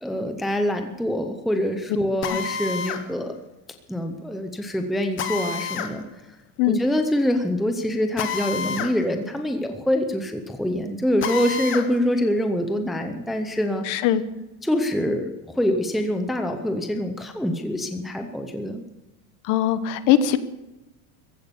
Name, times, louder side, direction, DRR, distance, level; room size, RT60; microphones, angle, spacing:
voice 1, 0.0-3.3 3.9-6.0 6.7-13.8 14.6-15.3 15.6-18.8, left 1 dB, ahead, 5 dB, 0.6 m, -25 dB
Drill, 2.2-3.0 5.2-5.9 8.2-8.9 9.3-9.4 11.2-11.9, left 6 dB, 30° left, 1.2 m, -29 dB
voice 2, 13.8-14.2 19.4-20.4, left 10 dB, 45° left, 13 dB, 1.1 m, -20 dB
15.5 x 12.5 x 7.0 m, 0.99 s
supercardioid pair, 160°, 43 cm